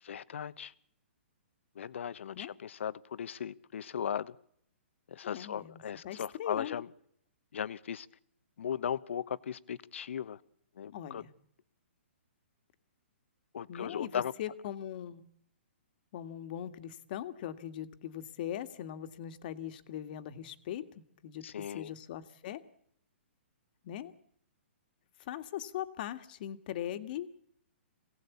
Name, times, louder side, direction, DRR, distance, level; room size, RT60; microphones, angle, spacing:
voice 1, 0.0-0.7 1.7-4.3 5.1-6.9 7.5-8.1 8.6-10.4 10.8-11.2 13.5-14.3 21.4-21.9, left 8 dB, 70° left, 1.1 m, -37 dB
voice 2, 5.2-6.8 10.9-11.3 13.7-15.3 16.1-22.6 23.8-24.1 25.2-27.3, left 11 dB, 45° left, 1.8 m, -40 dB
27.0 x 17.5 x 8.5 m
hypercardioid pair, 155°, 7 cm